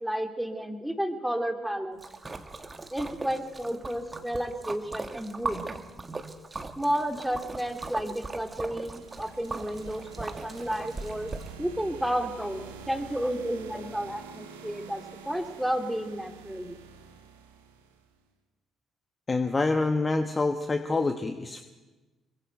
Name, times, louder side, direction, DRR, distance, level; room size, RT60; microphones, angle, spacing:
voice 1, 0.0-2.0 2.9-5.7 6.8-11.3 11.6-16.8, equal, 5° right, 5 dB, 2.7 m, -32 dB
Splash splatter, 2.0-11.5, right 3 dB, 25° right, 1.9 m, -39 dB
sound 1, 8.3-18.1, right 6 dB, 75° right, 1.9 m, -47 dB
voice 2, 19.3-21.6, left 3 dB, 30° left, 7 dB, 1.3 m, -26 dB
26.0 x 23.5 x 4.6 m, 1.2 s
figure-of-eight pair, 45°, 0 cm